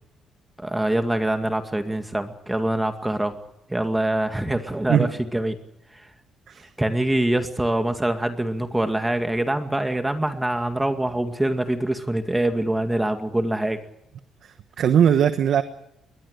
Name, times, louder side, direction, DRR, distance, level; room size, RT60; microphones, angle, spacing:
voice 1, 0.6-3.4 3.7-5.6 5.9-6.1 6.8-13.8, right 1 dB, 10° right, 7 dB, 2.2 m, -24 dB
voice 2, 14.4-15.6, right 8 dB, 65° right, 10 dB, 1.2 m, -20 dB
22.0 x 20.0 x 8.1 m, 0.83 s
cardioid pair, 90°, 0 cm